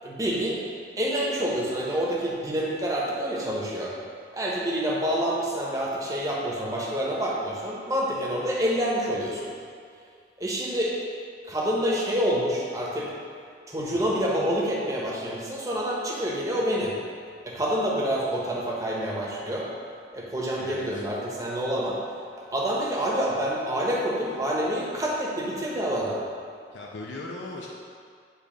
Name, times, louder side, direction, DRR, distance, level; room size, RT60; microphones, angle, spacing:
voice 1, 0.0-0.6 1.0-3.9 4.3-9.5 10.4-10.9 11.4-13.1 13.7-16.9 17.4-19.7 20.1-22.0 22.5-26.2, equal, 20° right, -4 dB, 1.0 m, -27 dB
voice 2, 20.6-21.0 26.7-27.7, left 2 dB, 75° left, -2 dB, 0.6 m, -38 dB
8.9 x 3.3 x 5.0 m, 2.2 s
head